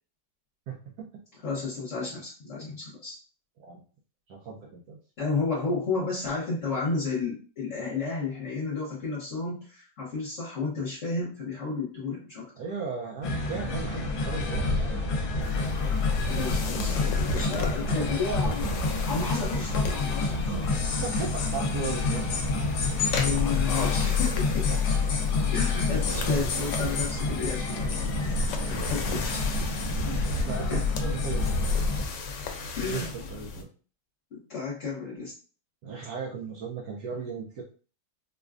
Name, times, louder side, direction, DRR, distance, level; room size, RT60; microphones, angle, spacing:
voice 1, 0.7-1.1 3.6-3.8 4.3-5.0 12.5-14.9 20.8-22.3 24.7-25.2 25.9-26.1 28.7-29.1 30.1-31.8 32.8-33.7 35.8-37.6, right 5 dB, 70° right, -2 dB, 1.2 m, -37 dB
voice 2, 1.3-3.2 5.2-12.5 16.3-18.8 19.1-20.4 21.8-21.9 23.2-24.7 25.5-27.9 28.4-29.5 30.7-30.9 32.8-33.1 34.3-35.3, left 4 dB, 50° left, -7 dB, 1.3 m, -32 dB
sound 1, 13.2-32.0, left 3 dB, 70° left, 1.3 m, -28 dB
sound 2, 15.4-33.6, left 5 dB, 90° left, 1.2 m, -36 dB
4.7 x 2.2 x 2.4 m, 0.39 s
omnidirectional pair, 1.8 m